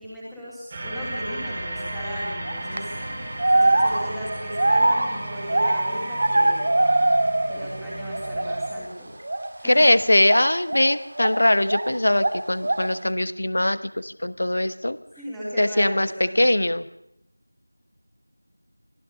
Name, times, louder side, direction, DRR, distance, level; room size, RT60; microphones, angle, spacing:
voice 1, 0.0-2.9 3.5-6.7 7.5-9.2 9.6-9.9 15.2-16.4, equal, ahead, -9 dB, 3.3 m, -36 dB
sound 1, 0.7-8.7, right 1 dB, 20° right, 3.8 m, -35 dB
sound 2, 2.5-2.8 3.4-7.8 8.0-8.8 9.2-9.5 10.2-11.9 12.2-13.0, right 2 dB, 35° right, 1.6 m, -22 dB
voice 2, 9.6-15.0 15.6-16.9, left 1 dB, 55° left, 14 dB, 1.1 m, -21 dB
24.5 x 15.5 x 6.8 m, 0.77 s
figure-of-eight pair, 170°, 0 cm